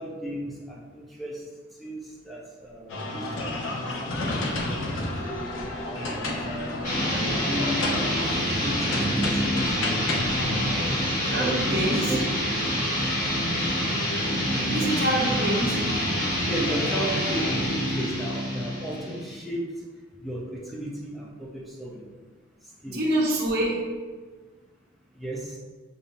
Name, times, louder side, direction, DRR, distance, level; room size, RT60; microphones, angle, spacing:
voice 1, 0.0-1.4 1.8-2.0 2.2-5.5 5.9-6.7 7.1-8.2 8.5-10.0 10.4-12.3 14.5-15.0 16.5-19.6 20.2-22.0 22.8-23.1 25.2-25.6, right 1 dB, ahead, -4 dB, 0.6 m, -35 dB
sound 1, 2.9-11.0, left 2 dB, 75° left, 0.7 m, -31 dB
sound 2, 6.8-19.4, equal, 40° left, 1.2 m, -26 dB
voice 2, 11.3-12.1 14.6-15.8 22.9-23.8, right 1 dB, 50° right, -4 dB, 1.0 m, -26 dB
6.9 x 2.6 x 2.6 m, 1.4 s
head